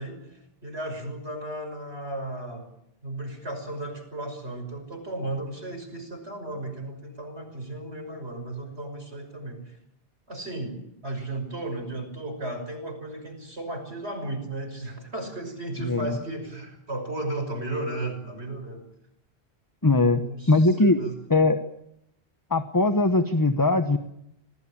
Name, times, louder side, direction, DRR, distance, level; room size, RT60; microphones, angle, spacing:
voice 1, 0.0-2.7 3.0-9.8 10.3-18.9 19.8-21.1, right 2 dB, 90° right, 6 dB, 6.3 m, -35 dB
voice 2, 15.8-16.1 19.8-20.2 20.5-21.0 21.3-21.6 22.5-24.0, left 2 dB, 20° left, 9 dB, 1.1 m, -20 dB
27.5 x 18.5 x 8.8 m, 0.79 s
omnidirectional pair, 1.1 m